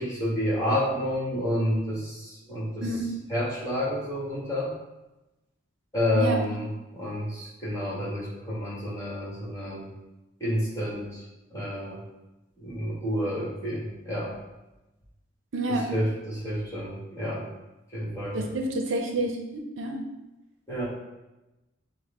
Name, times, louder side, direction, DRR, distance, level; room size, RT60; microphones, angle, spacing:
voice 1, 0.0-2.9 3.3-4.7 5.9-9.9 10.4-11.2 11.5-12.0 12.6-14.4 15.9-17.5 17.9-18.4 20.7-20.9, equal, 15° left, -6 dB, 1.4 m, -29 dB
voice 2, 2.8-3.1 6.1-6.4 15.5-15.9 18.3-20.0, right 1 dB, 75° right, 3 dB, 0.6 m, -29 dB
6.2 x 2.2 x 3.6 m, 1.0 s
head